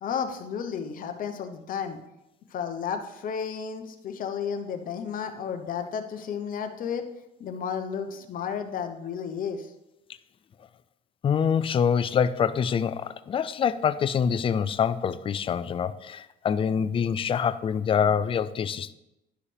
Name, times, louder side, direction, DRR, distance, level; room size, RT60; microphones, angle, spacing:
voice 1, 0.0-2.0 2.5-7.0 7.4-9.7, left 7 dB, 55° left, 0.9 m, -32 dB
voice 2, 11.2-18.9, left 7 dB, 30° left, 0.4 m, -25 dB
11.0 x 4.9 x 3.3 m
cardioid pair, 110°, 17 cm